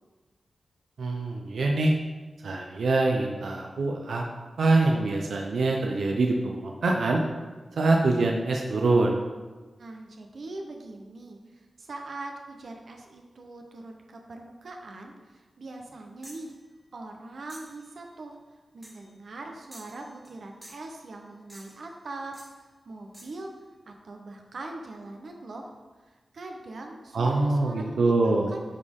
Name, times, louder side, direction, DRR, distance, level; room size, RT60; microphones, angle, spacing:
voice 1, 1.0-1.9 2.4-4.2 4.6-7.2 7.7-9.1 27.1-28.5, right 2 dB, 90° right, 1 dB, 0.6 m, -24 dB
voice 2, 9.8-16.5 16.9-18.4 18.7-22.3 22.9-23.5 23.9-25.7 26.3-28.6, right 2 dB, 60° right, 2 dB, 0.9 m, -41 dB
sound 1, 16.2-16.5 17.5-17.8 18.8-19.1 19.7-20.4 20.6-20.9 21.5-21.9 22.3-22.6 23.1-23.4, right 1 dB, 10° right, 1.0 m, -49 dB
9.6 x 4.2 x 3.7 m, 1.3 s
wide cardioid pair, 155°, 0 cm